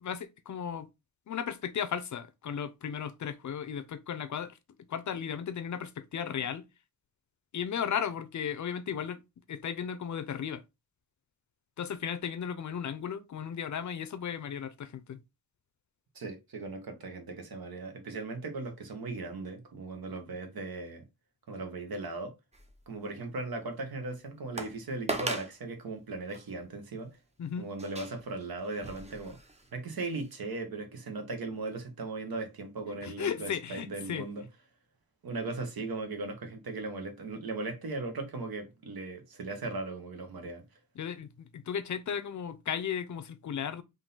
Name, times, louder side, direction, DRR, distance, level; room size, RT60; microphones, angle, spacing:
voice 1, 0.0-0.9 1.3-4.6 4.9-6.6 7.5-9.2 9.5-10.6 11.8-15.2 27.4-27.7 33.0-34.3 41.0-43.8, left 8 dB, 55° left, 0.5 m, -35 dB
voice 2, 16.1-21.0 21.5-22.3 22.9-27.1 27.6-29.4 29.7-34.4 35.2-40.6, right 3 dB, 80° right, 1.1 m, -38 dB
sound 1, 22.5-23.1 23.6-23.7 24.6-24.8 25.1-25.5 26.3-26.4 27.8-29.7 30.2-30.3, right 2 dB, 20° right, 0.6 m, -38 dB
3.8 x 2.7 x 3.9 m
wide cardioid pair, 170°, 36 cm